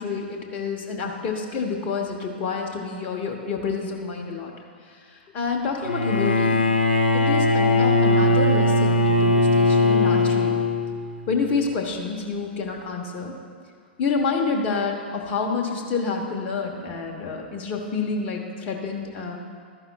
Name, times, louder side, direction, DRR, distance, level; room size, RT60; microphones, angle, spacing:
voice 1, 0.0-4.5 5.1-6.6 7.1-10.5 11.3-13.3 14.0-19.4, left 4 dB, 30° left, 1 dB, 1.2 m, -28 dB
Bowed string instrument, 5.8-11.1, left 2 dB, 75° left, 0.9 m, -19 dB
12.5 x 11.0 x 2.4 m, 2.1 s
figure-of-eight pair, 105°, 6 cm